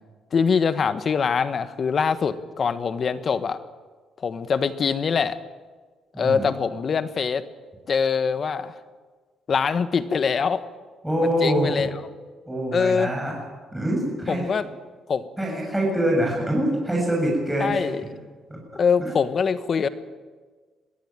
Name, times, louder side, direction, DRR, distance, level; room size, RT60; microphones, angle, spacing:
voice 1, 0.3-3.6 4.2-5.4 6.2-7.4 7.9-8.7 9.5-10.6 11.4-11.9 12.7-13.1 14.3-14.7 15.1-15.3 17.6-18.0 18.7-19.9, left 6 dB, 50° left, 12 dB, 1.3 m, -23 dB
voice 2, 6.1-6.4 11.0-11.7 12.5-13.3 13.7-14.5 15.4-17.9 18.5-18.6 19.0-19.2, equal, 5° right, -2 dB, 6.8 m, -24 dB
21.5 x 15.5 x 9.0 m, 1.4 s
cardioid pair, 90°, 0 cm